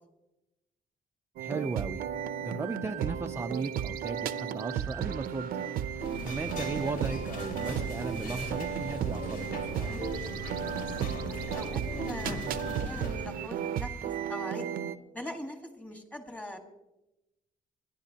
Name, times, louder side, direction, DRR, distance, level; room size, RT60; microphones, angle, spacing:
voice 1, 1.4-2.0 2.4-5.7 6.2-10.0, right 4 dB, 15° right, 5 dB, 0.4 m, -36 dB
sound 1, 1.4-14.9, right 9 dB, 90° right, 0.7 m, -34 dB
sound 2, 6.0-13.1, left 1 dB, 85° left, 3.1 m, -39 dB
voice 2, 10.8-14.7 15.1-16.6, left 1 dB, 10° left, 4 dB, 1.6 m, -42 dB
29.0 x 11.0 x 2.9 m, 0.95 s
cardioid pair, 160°, 15 cm